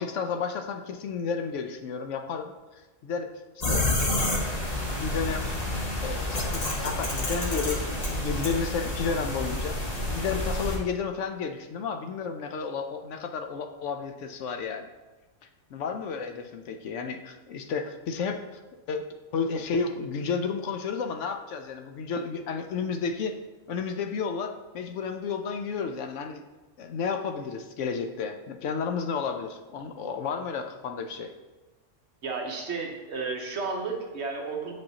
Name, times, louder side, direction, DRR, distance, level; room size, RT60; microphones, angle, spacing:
voice 1, 0.0-3.3 3.6-4.2 5.0-5.5 6.0-9.8 10.1-14.9 15.7-18.4 18.9-19.0 19.3-23.4 23.7-26.4 26.8-31.3, left 5 dB, 75° left, 6 dB, 0.9 m, -32 dB
sound 1, 3.6-10.8, left 1 dB, 35° left, 1.1 m, -29 dB
voice 2, 32.2-34.7, right 4 dB, 65° right, 0 dB, 1.2 m, -32 dB
7.5 x 5.2 x 2.8 m, 1.2 s
omnidirectional pair, 1.3 m